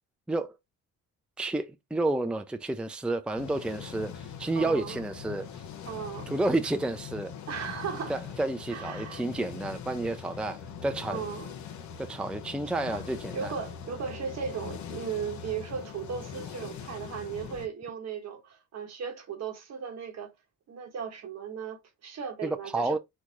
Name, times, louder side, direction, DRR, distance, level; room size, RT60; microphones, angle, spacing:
voice 1, 1.4-5.6 6.3-7.3 8.1-11.2 12.0-13.5 22.4-23.0, right 2 dB, 5° right, 0.5 m, -30 dB
sound 1, 3.3-17.7, left 7 dB, 70° left, 0.9 m, -42 dB
voice 2, 4.5-5.0 5.8-6.3 7.5-8.2 8.7-9.2 11.1-11.6 12.9-13.0 13.3-20.3 20.7-23.0, right 7 dB, 60° right, 1.3 m, -37 dB
4.7 x 2.3 x 3.9 m
cardioid pair, 90°, 30 cm